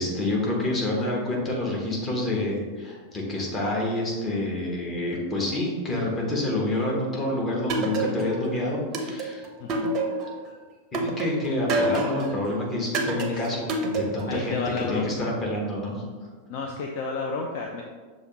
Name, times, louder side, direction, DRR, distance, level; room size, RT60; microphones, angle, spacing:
voice 1, 0.0-9.5 10.9-14.6 14.9-16.0, left 1 dB, 25° left, -3 dB, 1.2 m, -28 dB
sound 1, 7.7-8.5 8.9-10.4 10.9-12.4 12.9-14.4, right 2 dB, 35° right, 0.6 m, -27 dB
voice 2, 9.6-9.9 13.3-13.6 14.3-15.3 16.5-17.8, left 4 dB, 45° left, 1 dB, 0.4 m, -31 dB
6.4 x 2.6 x 3.0 m, 1.5 s
figure-of-eight pair, 90°, 0 cm